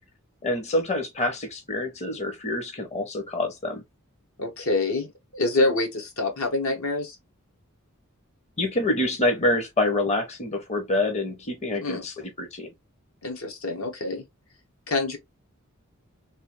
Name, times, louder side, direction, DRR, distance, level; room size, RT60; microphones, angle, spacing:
voice 1, 0.4-3.8 8.6-12.7, left 2 dB, 30° left, 0.7 m, -26 dB
voice 2, 4.4-7.2 11.8-12.0 13.2-14.2 14.9-15.2, left 2 dB, 75° left, 1.2 m, -26 dB
3.2 x 2.6 x 3.0 m
head